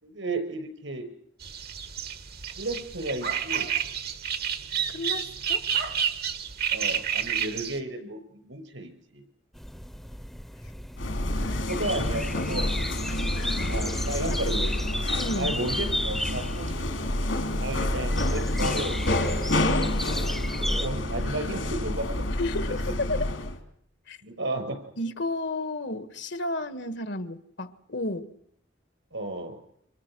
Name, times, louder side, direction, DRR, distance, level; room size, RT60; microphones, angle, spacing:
voice 1, 0.0-1.1 2.6-3.7 6.7-9.2 11.7-12.7 13.7-14.7 15.3-16.9 17.6-19.0 19.4-19.9 20.5-22.2 22.7-22.8 24.2-24.8 29.1-29.6, right 2 dB, 75° right, 6.0 m, -33 dB
sound 1, 1.4-7.8, right 8 dB, 55° right, 1.6 m, -30 dB
voice 2, 4.9-5.7 11.5-11.9 13.1-13.8 15.2-15.6 19.6-20.0 22.4-23.3 24.1-24.2 25.0-28.3, left 2 dB, 65° left, 1.7 m, -32 dB
sound 2, 9.5-20.9, equal, ahead, 1.0 m, -35 dB
sound 3, 11.0-23.6, left 1 dB, 80° left, 3.7 m, -28 dB
29.5 x 26.0 x 6.3 m
head